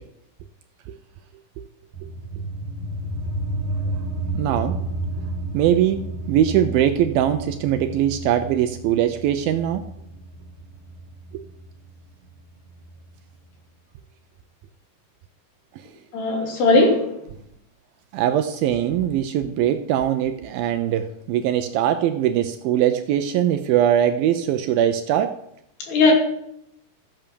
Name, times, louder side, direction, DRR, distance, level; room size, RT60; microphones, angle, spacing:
sound 1, 1.9-13.0, right 2 dB, 40° right, 2.6 m, -32 dB
voice 1, 4.3-4.8 5.5-6.0 6.3-9.8 11.3-11.4 18.1-25.3, right 10 dB, 80° right, 9 dB, 2.2 m, -21 dB
voice 2, 16.1-17.0 25.9-26.1, left 3 dB, 80° left, 1 dB, 5.0 m, -17 dB
14.0 x 9.3 x 6.9 m, 0.77 s
omnidirectional pair, 4.7 m